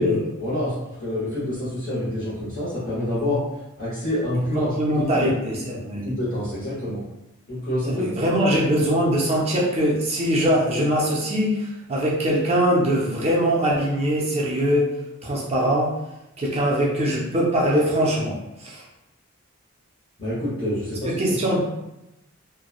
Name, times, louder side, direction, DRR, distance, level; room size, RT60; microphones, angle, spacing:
voice 1, 0.0-3.4 3.8-5.3 6.0-7.0 7.5-8.1 20.2-21.1, left 1 dB, 35° left, -12 dB, 0.9 m, -26 dB
voice 2, 4.5-6.0 7.9-14.9 15.2-15.9 16.4-18.8 21.0-21.6, equal, 30° right, -3 dB, 0.5 m, -22 dB
2.9 x 2.1 x 2.3 m, 0.90 s
head